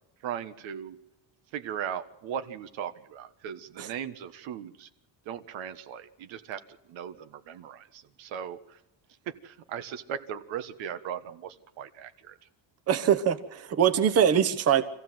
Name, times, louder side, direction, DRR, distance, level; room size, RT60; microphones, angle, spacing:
voice 1, 0.2-1.0 1.5-4.9 5.2-6.6 6.9-8.8 9.2-12.4, right 9 dB, 80° right, 9 dB, 1.5 m, -38 dB
voice 2, 12.9-14.8, right 8 dB, 30° right, 9 dB, 1.1 m, -23 dB
25.5 x 15.5 x 7.7 m, 0.87 s
cardioid pair, 165°, 45 cm